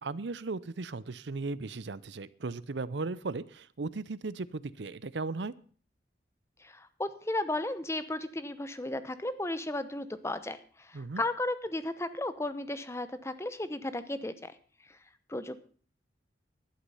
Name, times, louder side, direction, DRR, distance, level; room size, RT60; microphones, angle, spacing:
voice 1, 0.0-5.5 10.9-11.2, right 3 dB, 75° right, 18 dB, 0.7 m, -36 dB
voice 2, 6.6-14.5 14.9-15.0 15.3-15.6, left 1 dB, 15° left, 12 dB, 0.8 m, -34 dB
11.5 x 11.5 x 5.5 m, 0.43 s
head